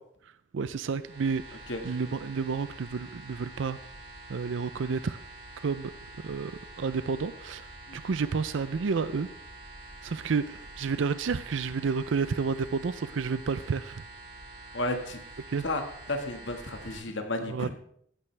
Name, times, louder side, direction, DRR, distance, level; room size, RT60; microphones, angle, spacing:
voice 1, 0.5-3.8 4.3-5.2 5.6-5.9 6.2-6.5 6.8-7.6 7.9-9.3 10.0-14.0 15.5-15.6 17.4-17.7, right 5 dB, 85° right, 14 dB, 0.5 m, -30 dB
sound 1, 0.9-17.0, right 2 dB, 65° right, 3.6 m, -47 dB
voice 2, 14.7-15.2 15.6-17.7, left 2 dB, 75° left, 5 dB, 1.7 m, -32 dB
15.0 x 10.5 x 3.3 m, 0.66 s
head